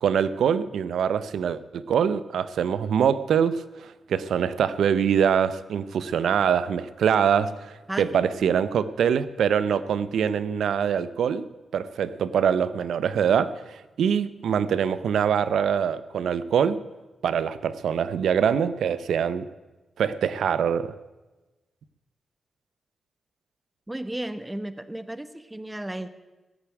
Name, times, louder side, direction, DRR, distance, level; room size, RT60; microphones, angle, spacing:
voice 1, 0.0-11.5 11.7-16.8 17.2-19.5 20.0-20.9, right 8 dB, 85° right, 15 dB, 0.6 m, -24 dB
voice 2, 7.9-8.5 23.9-26.1, right 1 dB, 15° right, 12 dB, 1.0 m, -34 dB
16.0 x 6.9 x 9.1 m, 1.1 s
cardioid pair, 65°, 0 cm